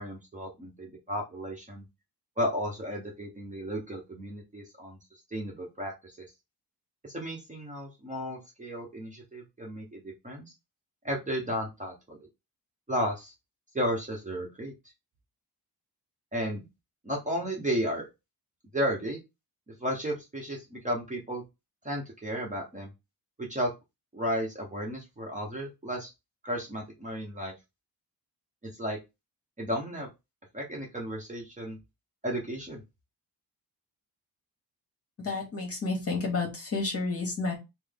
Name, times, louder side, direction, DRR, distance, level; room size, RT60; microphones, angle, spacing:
voice 1, 0.0-1.8 2.4-5.0 5.3-6.2 7.0-10.5 11.0-12.2 12.9-13.3 13.7-14.7 16.3-16.7 17.0-18.1 18.7-19.2 19.8-21.4 21.8-22.9 23.4-23.7 24.1-26.1 26.4-27.5 28.6-29.0 29.6-30.1 30.5-31.8 32.2-32.8, equal, 20° right, -1 dB, 0.8 m, -33 dB
voice 2, 35.2-37.5, left 3 dB, 35° left, 1 dB, 1.3 m, -30 dB
3.8 x 2.0 x 3.4 m, 0.24 s
wide cardioid pair, 155°, 39 cm